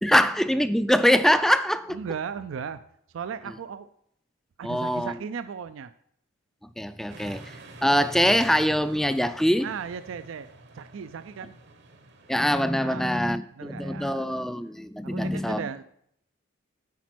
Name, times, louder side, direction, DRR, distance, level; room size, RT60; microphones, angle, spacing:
voice 1, 0.0-2.0 4.6-5.1 6.8-7.5 7.8-9.7 12.3-15.7, equal, ahead, 12 dB, 0.3 m, -23 dB
voice 2, 1.9-2.8 3.1-3.9 4.6-5.9 9.6-11.6 12.8-14.4 15.0-15.8, right 6 dB, 75° right, 12 dB, 0.4 m, -37 dB
sound 1, 7.1-12.5, right 3 dB, 60° right, 0.9 m, -49 dB
8.4 x 5.1 x 6.1 m, 0.71 s
head